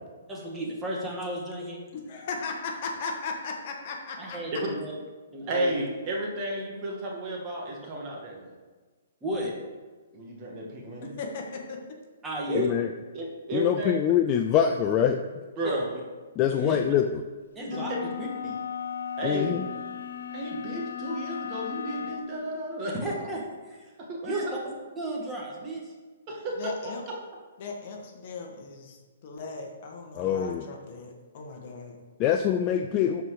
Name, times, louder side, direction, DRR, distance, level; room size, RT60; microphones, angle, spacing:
voice 1, 0.3-1.8 4.2-4.9 5.3-5.9 9.2-9.5 12.2-12.7 15.6-15.8 16.6-16.8 17.5-18.5 23.0-23.9 24.2-25.9, right 1 dB, 10° right, -3 dB, 1.7 m, -34 dB
voice 2, 1.9-4.4 11.0-11.8 16.5-16.8 26.6-27.0 27.6-32.0, left 4 dB, 40° left, 1 dB, 1.5 m, -37 dB
voice 3, 5.5-8.5 10.1-11.1 12.5-12.7 13.1-13.9 15.6-16.0 16.6-16.8 17.7-18.1 19.2-19.6 20.3-23.1 24.1-24.6 26.3-26.9, right 1 dB, 30° right, -2 dB, 1.9 m, -32 dB
voice 4, 12.5-12.9 13.5-15.2 16.4-17.2 19.2-19.7 30.1-30.6 32.2-33.2, left 9 dB, 25° left, 6 dB, 0.4 m, -24 dB
sound 1, 17.7-22.3, left 8 dB, 80° left, 0.7 m, -36 dB
12.0 x 4.6 x 4.9 m, 1.4 s
hypercardioid pair, 160°, 0 cm